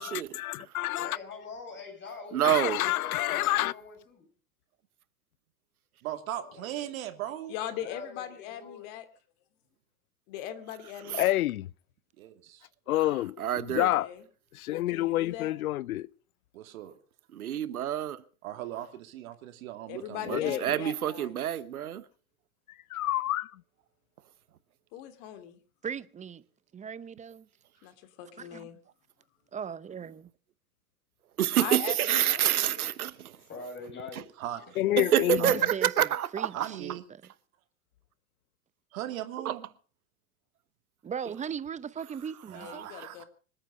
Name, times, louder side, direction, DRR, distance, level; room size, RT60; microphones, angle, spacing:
voice 1, 0.0-1.2 2.4-3.7 11.1-11.7 12.9-14.1 14.5-16.1 20.3-20.6 22.7-23.6 34.8-35.6, left 15 dB, 75° left, 0.7 m, -28 dB
voice 2, 0.8-4.2 6.3-6.9 7.6-8.9 33.3-34.2 34.8-35.1, left 4 dB, 25° left, 7.4 m, -45 dB
voice 3, 2.3-2.8 11.1-11.2 13.4-13.9 17.3-18.2 20.3-22.0 31.4-33.3 35.0-36.7 39.4-39.5, right 11 dB, 80° right, 1.1 m, -27 dB
voice 4, 6.0-7.5 12.2-12.6 16.5-17.0 18.4-20.4 34.4-34.6 35.4-35.6 36.5-37.0 38.9-39.7 42.5-43.2, right 12 dB, 65° right, 2.6 m, -38 dB
voice 5, 7.5-9.0 10.3-11.3 13.7-14.2 14.7-15.5 19.9-21.4 24.9-25.6 27.8-28.8 31.6-32.9 42.5-43.2, left 11 dB, 55° left, 3.0 m, -40 dB
voice 6, 25.8-26.4 26.7-27.5 28.4-28.7 29.5-30.3 35.3-37.2 41.0-42.9, right 7 dB, 15° right, 0.7 m, -38 dB
26.0 x 9.0 x 5.5 m
hypercardioid pair, 90°, 43 cm